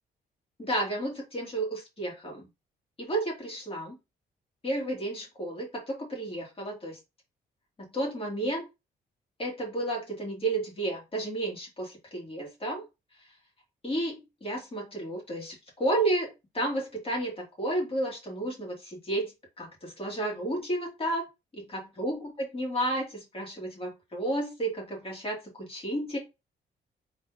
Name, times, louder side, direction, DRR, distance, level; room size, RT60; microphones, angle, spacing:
voice 1, 0.6-2.5 3.0-4.0 4.6-7.0 7.9-8.6 9.4-12.8 13.8-21.2 21.5-22.2 22.5-26.2, right 1 dB, 30° left, -1 dB, 2.9 m, -32 dB
4.2 x 4.2 x 3.0 m, 0.25 s
cardioid pair, 75°, 18 cm